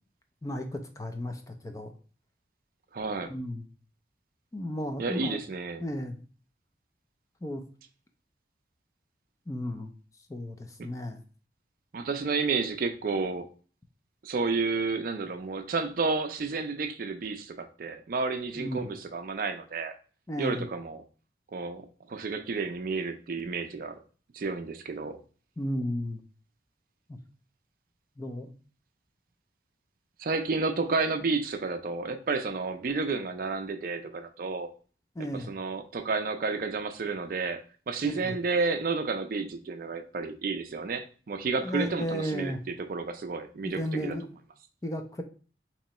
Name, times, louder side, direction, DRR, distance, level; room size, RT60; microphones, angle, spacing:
voice 1, 0.4-1.9 3.2-3.7 4.5-5.4 5.8-6.2 7.4-7.6 9.5-9.9 10.3-11.2 18.6-18.8 20.3-20.7 25.6-26.2 27.1-27.2 28.2-28.5 35.2-35.5 38.0-38.3 41.6-42.6 43.6-44.3 44.8-45.2, equal, 20° left, 5 dB, 0.3 m, -34 dB
voice 2, 2.9-3.3 5.0-5.9 11.9-13.5 14.2-19.9 20.4-21.0 21.5-24.0 24.3-25.2 30.2-34.7 35.3-37.6 37.9-44.2, right 4 dB, 50° right, 7 dB, 0.4 m, -31 dB
3.0 x 2.8 x 4.1 m, 0.39 s
head